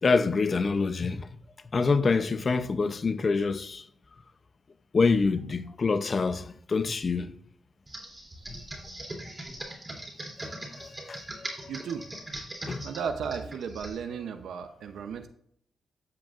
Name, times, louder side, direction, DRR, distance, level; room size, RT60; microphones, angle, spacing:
voice 1, 0.0-1.3 1.7-3.8 4.9-7.3 10.4-11.5 12.7-12.9, left 4 dB, 35° left, 0.6 m, -26 dB
Computer keyboard, 7.9-14.0, right 1 dB, 15° right, 2.9 m, -40 dB
voice 2, 11.7-12.1 12.8-15.3, right 6 dB, 80° right, 0.7 m, -35 dB
12.5 x 7.7 x 2.5 m
wide cardioid pair, 140°, 0 cm